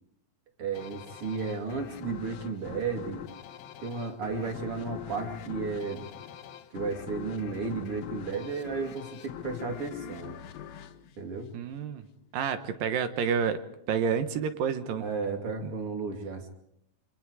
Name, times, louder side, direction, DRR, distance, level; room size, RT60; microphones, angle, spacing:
voice 1, 0.6-3.2 3.8-6.1 6.7-10.4 11.2-11.5 15.0-16.5, right 4 dB, 40° right, 3 dB, 3.2 m, -33 dB
sound 1, 0.7-12.0, left 10 dB, 75° left, 2.9 m, -43 dB
voice 2, 11.5-12.1 12.3-13.6 13.9-15.1 15.6-15.7, right 7 dB, 70° right, 9 dB, 2.7 m, -29 dB
28.0 x 26.0 x 4.9 m, 0.75 s
omnidirectional pair, 4.6 m